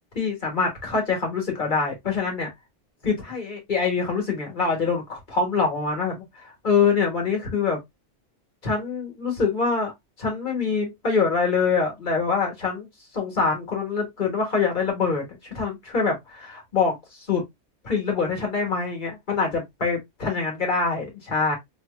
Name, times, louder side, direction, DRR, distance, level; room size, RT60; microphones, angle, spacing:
voice 1, 0.1-2.5 3.0-7.8 8.6-9.9 10.2-12.9 13.1-17.4 17.8-21.5, left 5 dB, 40° left, 1.6 m, -25 dB
3.5 x 3.1 x 2.3 m
omnidirectional pair, 1.3 m